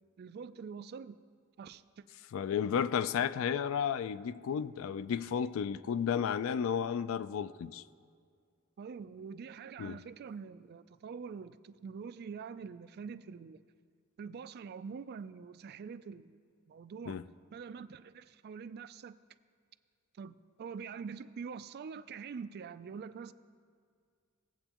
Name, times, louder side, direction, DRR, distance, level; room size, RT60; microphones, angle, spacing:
voice 1, 0.2-1.2 1.6-2.0 8.8-13.6 14.2-16.4 16.7-17.2 17.5-19.2 20.2-23.3, right 6 dB, 50° right, 0.3 m, -45 dB
voice 2, 2.3-7.8 9.8-10.0 17.1-17.2, left 7 dB, 70° left, 0.3 m, -33 dB
18.5 x 7.9 x 2.9 m
head